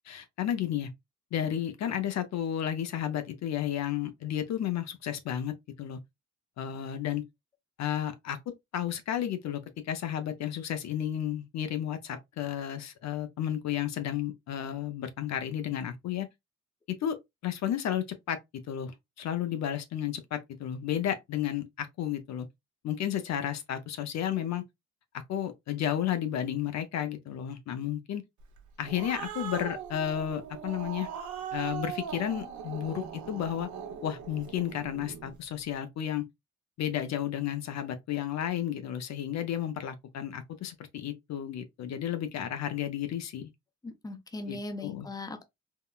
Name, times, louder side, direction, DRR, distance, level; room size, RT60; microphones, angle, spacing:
voice 1, 0.1-0.9 1.3-6.0 6.6-7.2 7.8-16.3 16.9-17.2 17.4-18.4 18.7-22.5 22.8-24.6 25.1-28.2 28.8-31.1 31.5-33.7 34.0-36.2 36.8-43.5 44.5-45.1, left 10 dB, 65° left, 0.6 m, -32 dB
Growling, 28.6-35.4, right 8 dB, 70° right, 0.9 m, -40 dB
voice 2, 43.8-45.4, left 2 dB, 10° left, 0.6 m, -39 dB
3.6 x 2.2 x 2.3 m
cardioid pair, 90°, 30 cm